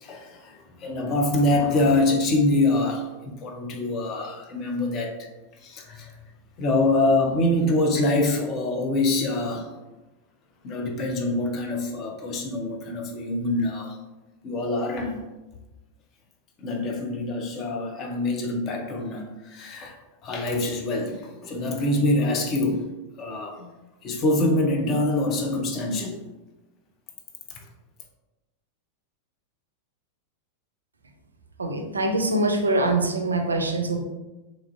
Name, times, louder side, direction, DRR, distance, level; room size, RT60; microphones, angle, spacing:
voice 1, 0.0-5.3 5.6-6.1 6.6-9.7 10.6-14.0 14.4-15.3 16.6-22.9 23.2-23.7 24.0-26.2 27.6-27.7, left 2 dB, 35° left, 2 dB, 0.5 m, -25 dB
voice 2, 31.6-34.0, right 2 dB, 75° right, 3 dB, 0.3 m, -24 dB
3.0 x 2.4 x 2.4 m, 1.1 s
figure-of-eight pair, 90°, 0 cm